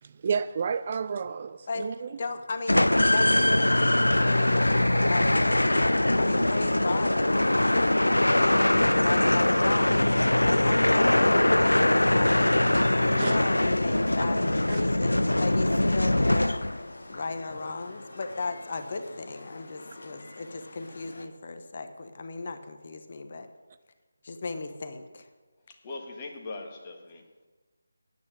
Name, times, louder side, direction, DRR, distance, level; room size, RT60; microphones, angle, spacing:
voice 1, 0.0-2.2 8.3-8.4 12.7-13.4 14.7-14.8, right 6 dB, 35° right, 0.3 m, -32 dB
voice 2, 2.2-2.8 3.1-4.7 5.1-7.9 8.3-12.4 13.0-16.6 17.1-23.5 24.2-25.3, left 3 dB, 40° left, 1.1 m, -36 dB
sound 1, 2.7-16.9, left 1 dB, 85° left, 0.4 m, -22 dB
sound 2, 4.1-21.3, left 2 dB, 60° left, 1.4 m, -45 dB
voice 3, 25.7-27.5, left 3 dB, 25° left, 1.7 m, -41 dB
9.4 x 8.7 x 9.0 m
figure-of-eight pair, 160°, 0 cm